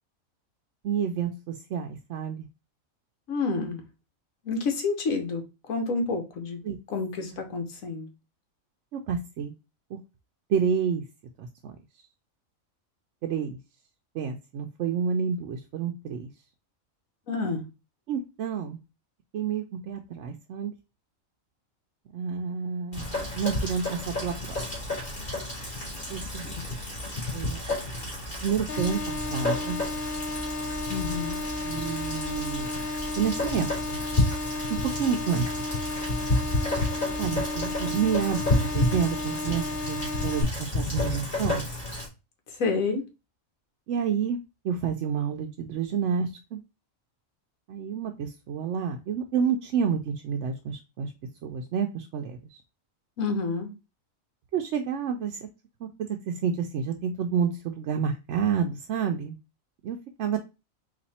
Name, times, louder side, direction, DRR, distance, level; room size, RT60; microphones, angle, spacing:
voice 1, 0.8-2.5 6.6-6.8 8.9-9.5 9.9-10.0 10.5-11.0 11.4-11.7 13.2-13.6 14.1-16.3 18.1-18.8 19.3-20.7 22.1-23.1 23.3-24.6 26.1-26.5 27.3-27.6 28.4-29.8 31.6-32.7 33.2-34.0 34.8-35.8 37.2-41.7 43.9-44.4 44.6-46.6 47.7-51.1 51.4-52.6 54.5-55.4 55.8-55.9 56.3-59.4 59.8-60.4, right 7 dB, 65° right, 0.8 m, -29 dB
voice 2, 3.3-3.8 4.4-5.4 5.7-6.6 6.9-8.1 17.3-17.6 30.9-31.4 42.6-43.0 53.2-53.7, left 4 dB, 75° left, 1.4 m, -28 dB
Rain, 22.9-42.1, left 2 dB, 35° left, 2.5 m, -31 dB
sound 1, 28.7-40.4, left 2 dB, 55° left, 0.8 m, -33 dB
4.2 x 2.7 x 4.1 m
omnidirectional pair, 1.4 m